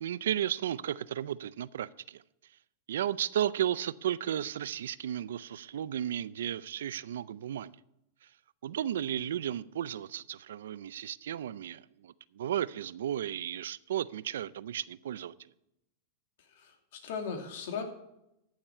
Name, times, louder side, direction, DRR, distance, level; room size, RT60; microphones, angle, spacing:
voice 1, 0.0-2.2 2.9-7.8 8.6-15.3, right 10 dB, 85° right, 0.5 m, -34 dB
voice 2, 16.4-17.8, left 6 dB, 70° left, 2.5 m, -38 dB
14.0 x 7.3 x 4.4 m
hypercardioid pair, 130°, 0 cm